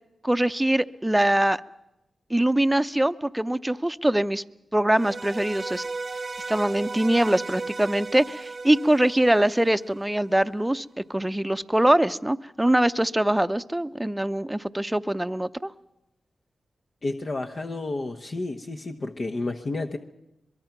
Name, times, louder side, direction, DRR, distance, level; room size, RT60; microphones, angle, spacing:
voice 1, 0.2-1.6 2.3-4.4 4.7-5.8 6.5-15.7, right 1 dB, 10° right, 12 dB, 0.7 m, -23 dB
sound 1, 4.9-10.2, right 3 dB, 45° right, 0.9 m, -35 dB
voice 2, 17.0-20.0, left 2 dB, 50° left, 4 dB, 1.2 m, -31 dB
23.0 x 22.5 x 6.0 m, 0.88 s
cardioid pair, 50°, 0 cm